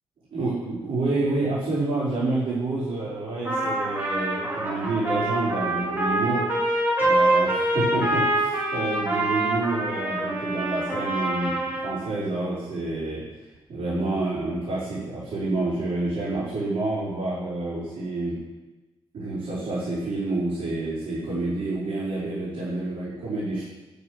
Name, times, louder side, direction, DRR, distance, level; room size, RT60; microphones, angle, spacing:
voice 1, 0.3-6.4 7.0-13.2 13.7-18.4 19.1-23.6, right 2 dB, 80° right, -12 dB, 4.8 m, -28 dB
Trumpet, 3.4-12.0, right 1 dB, 20° right, 4.1 m, -25 dB
9.6 x 6.5 x 8.8 m, 1.1 s
wide cardioid pair, 115°, 10 cm